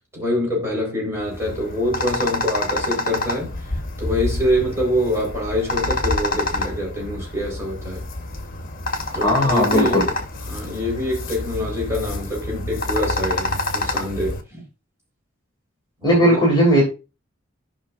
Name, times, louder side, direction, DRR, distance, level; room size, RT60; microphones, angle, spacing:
voice 1, 0.1-3.7 4.0-8.0 9.1-10.0 10.5-14.4 16.0-16.2, left 1 dB, 15° right, 4.2 m, -25 dB
sound 1, 1.2-14.4, left 2 dB, 45° left, 1.2 m, -27 dB
voice 2, 9.1-10.0 16.0-16.8, equal, 20° left, 2.5 m, -17 dB
15.0 x 5.4 x 2.5 m
head